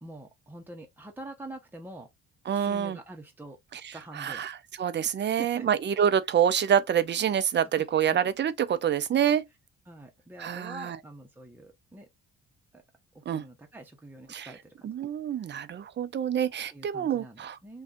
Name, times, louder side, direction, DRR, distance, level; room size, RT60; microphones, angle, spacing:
voice 1, 0.0-2.1 2.5-3.6 3.9-4.4 5.1-5.7 7.8-8.2 9.9-12.1 12.7-12.8 13.1-14.9 16.7-17.8, right 1 dB, 5° right, 0.7 m, -45 dB
voice 2, 2.5-3.0 3.7-9.4 10.4-11.0 13.3-13.4 14.3-14.5 14.8-17.6, right 9 dB, 40° right, 0.4 m, -27 dB
2.6 x 2.3 x 3.7 m
cardioid pair, 90°, 30 cm